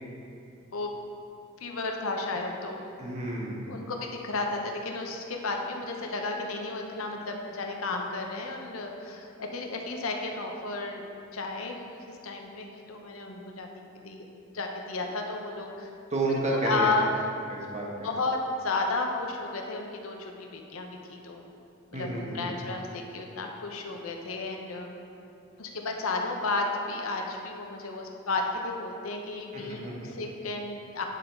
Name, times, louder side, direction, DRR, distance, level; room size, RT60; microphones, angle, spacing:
voice 1, 1.6-2.8 3.7-11.0 11.3-14.2 14.5-15.9 16.5-17.2 18.0-21.4 21.9-25.0 25.6-31.0, left 3 dB, 80° left, 2 dB, 0.7 m, -33 dB
voice 2, 3.0-3.7 16.1-16.9 17.5-18.1 21.9-22.6 29.5-29.9, right 2 dB, 35° right, -3 dB, 1.1 m, -31 dB
9.1 x 3.9 x 4.5 m, 2.6 s
head